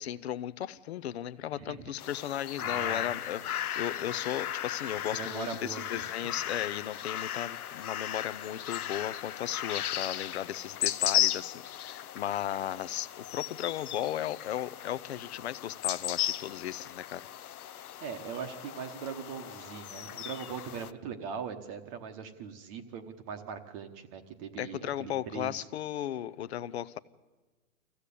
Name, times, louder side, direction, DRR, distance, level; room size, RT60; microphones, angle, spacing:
voice 1, 0.0-17.3 24.6-27.0, left 11 dB, 50° left, 17 dB, 0.7 m, -36 dB
sound 1, 2.0-20.9, left 11 dB, 85° left, 0.9 m, -36 dB
voice 2, 2.6-3.1 5.1-6.0 18.0-25.7, right 6 dB, 20° right, 7 dB, 1.0 m, -40 dB
25.0 x 15.5 x 8.4 m, 1.3 s
hypercardioid pair, 160°, 43 cm